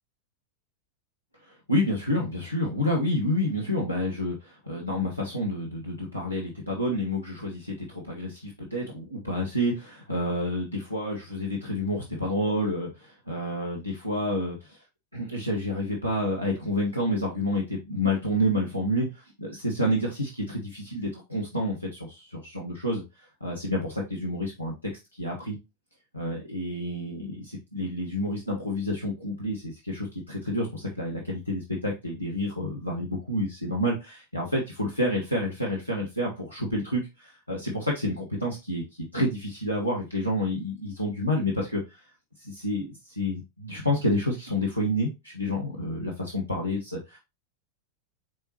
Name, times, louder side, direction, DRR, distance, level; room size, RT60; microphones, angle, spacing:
voice 1, 1.4-14.8 15.1-24.7 25.1-25.6 26.1-38.8 39.1-42.0 42.4-47.2, left 1 dB, 90° left, -2 dB, 0.8 m, -29 dB
4.7 x 3.4 x 2.8 m, 0.24 s
figure-of-eight pair, 90°, 0 cm